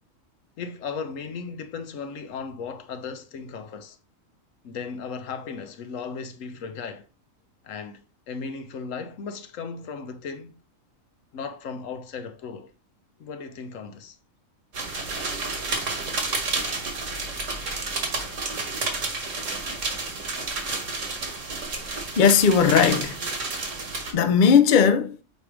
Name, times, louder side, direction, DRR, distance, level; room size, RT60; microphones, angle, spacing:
voice 1, 0.6-4.0 4.6-7.0 7.6-10.5 11.3-12.7 13.2-14.2, left 5 dB, 75° left, 1.1 m, -36 dB
sound 1, 14.7-24.1, right 3 dB, 65° right, 1.7 m, -30 dB
voice 2, 22.2-23.2 24.1-25.2, left 6 dB, 55° left, 0.5 m, -17 dB
6.8 x 4.8 x 3.0 m
omnidirectional pair, 1.4 m